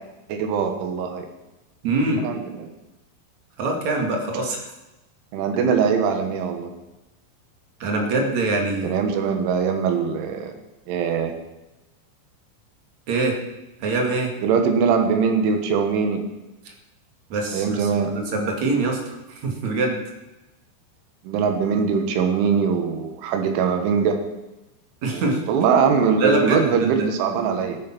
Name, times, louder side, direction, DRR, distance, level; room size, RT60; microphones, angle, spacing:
voice 1, 0.3-1.3 2.2-2.7 5.3-6.7 8.8-10.5 10.9-11.3 14.4-16.3 17.5-18.1 21.3-24.2 25.1-27.8, right 6 dB, 90° right, 5 dB, 3.8 m, -22 dB
voice 2, 1.8-2.2 3.6-4.6 5.7-5.8 7.8-9.0 13.1-13.4 13.8-14.3 17.3-19.1 19.4-20.0 25.0-25.4 26.2-27.1, right 2 dB, 45° right, 2 dB, 2.9 m, -24 dB
16.0 x 9.2 x 6.0 m, 1.0 s
omnidirectional pair, 5.4 m